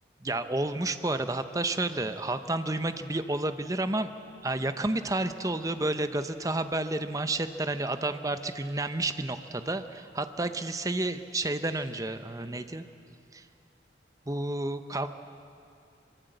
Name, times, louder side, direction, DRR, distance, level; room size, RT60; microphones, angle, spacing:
voice 1, 0.2-4.1 4.4-12.8 13.3-13.4 14.3-15.1, right 2 dB, 20° right, 10 dB, 0.8 m, -30 dB
23.5 x 23.0 x 7.9 m, 2.5 s
head